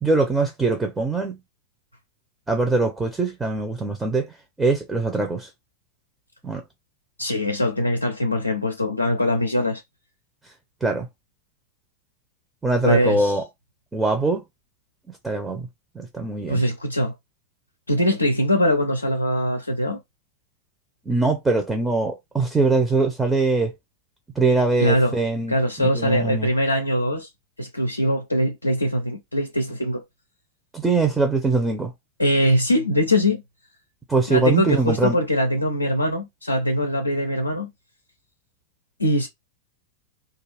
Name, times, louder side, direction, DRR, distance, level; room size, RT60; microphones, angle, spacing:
voice 1, 0.0-1.4 2.5-5.5 6.4-6.6 10.8-11.1 12.6-13.4 13.9-14.4 15.2-15.7 15.9-16.6 21.1-23.7 24.4-26.5 30.7-31.9 34.1-35.2, right 3 dB, 10° right, 0.6 m, -22 dB
voice 2, 7.2-9.8 12.8-13.4 16.5-17.1 17.9-20.0 24.8-25.1 25.5-27.3 27.6-30.0 32.2-33.4 34.3-37.7 39.0-39.3, equal, 80° left, 0.4 m, -22 dB
2.4 x 2.4 x 3.2 m
figure-of-eight pair, 90°, 0 cm